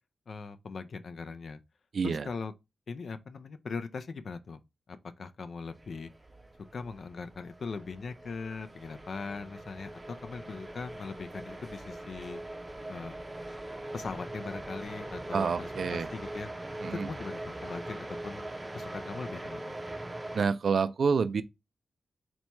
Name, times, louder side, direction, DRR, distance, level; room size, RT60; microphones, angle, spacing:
voice 1, 0.3-1.6 2.0-2.5 2.9-4.6 5.2-6.1 6.7-12.4 12.9-13.1 13.9-16.5 16.9-19.7, left 4 dB, 60° left, 0.4 m, -40 dB
voice 2, 1.9-2.3 15.3-16.1 16.8-17.1 20.3-21.4, right 5 dB, 60° right, 0.3 m, -28 dB
sound 1, 5.7-20.5, right 1 dB, 15° right, 0.6 m, -42 dB
4.4 x 2.3 x 4.1 m
cardioid pair, 85°, 0 cm